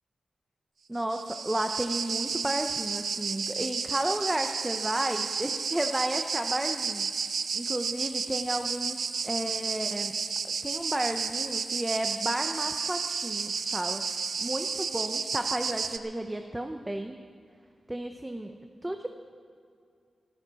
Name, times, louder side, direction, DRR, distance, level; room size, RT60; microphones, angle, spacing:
voice 1, 0.9-10.2 10.4-17.2 17.9-18.5 18.8-19.1, right 1 dB, 10° right, 5 dB, 0.6 m, -33 dB
sound 1, 1.0-16.0, right 5 dB, 65° right, 0.7 m, -32 dB
14.5 x 14.0 x 6.3 m, 2.3 s
wide cardioid pair, 145°, 0 cm